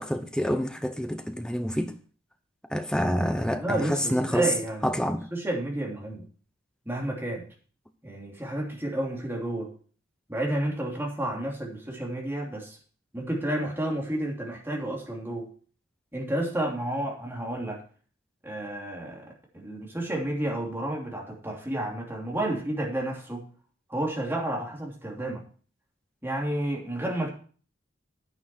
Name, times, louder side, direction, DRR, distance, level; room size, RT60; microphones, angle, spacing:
voice 1, 0.0-1.9 2.7-4.5 4.8-5.3, equal, 5° left, 0.8 m, -27 dB
voice 2, 2.9-6.3 6.8-7.5 8.0-9.7 10.3-12.8 13.1-15.5 16.1-17.8 18.4-19.2 19.5-23.5 23.9-25.4 26.2-27.3, right 1 dB, 10° right, 2.9 m, -31 dB
9.7 x 9.0 x 4.4 m
head